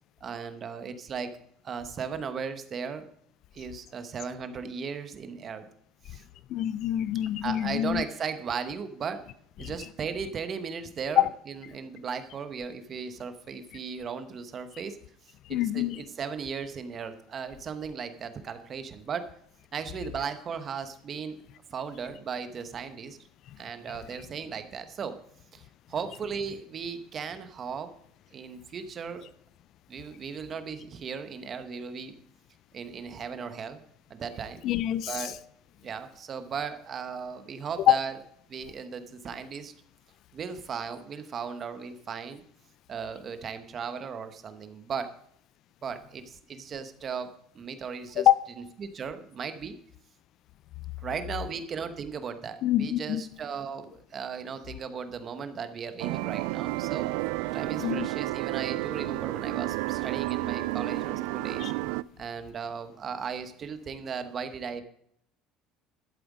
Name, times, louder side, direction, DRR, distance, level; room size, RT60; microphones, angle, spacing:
voice 1, 0.2-1.3 1.6-3.1 3.5-5.7 6.1-6.2 7.4-9.2 9.6-15.0 15.5-19.3 19.7-21.4 21.7-23.2 23.6-25.2 25.5-27.9 28.3-29.3 29.9-32.2 32.7-33.8 34.1-34.6 35.1-35.3 35.8-38.1 38.5-39.7 40.3-42.4 42.9-45.1 45.8-48.3 48.8-49.7 51.0-57.1 57.5-61.7 62.2-64.8, right 6 dB, 30° right, 1.0 m, -36 dB
voice 2, 6.5-8.0 9.6-9.7 11.2-11.3 15.5-16.0 34.6-35.3 37.9-38.0 48.2-48.4 52.6-53.2 57.8-58.1 61.6-61.7, left 13 dB, 45° left, 0.4 m, -25 dB
sound 1, 56.0-62.0, right 20 dB, 85° right, 0.3 m, -31 dB
12.0 x 7.8 x 4.9 m
cardioid pair, 160°, 0 cm